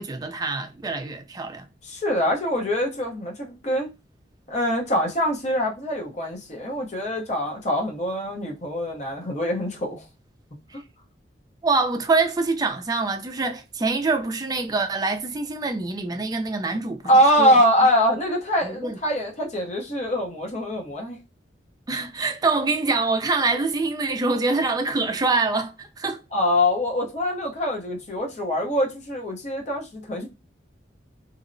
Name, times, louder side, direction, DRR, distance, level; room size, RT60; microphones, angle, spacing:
voice 1, 0.0-1.7 10.7-10.8 11.6-17.0 17.4-17.6 18.6-19.0 21.9-26.2, right 3 dB, 20° right, 0.3 m, -25 dB
voice 2, 1.8-3.9 4.5-10.0 17.0-21.2 26.3-30.3, equal, 40° left, 0.7 m, -23 dB
2.7 x 2.0 x 2.5 m
head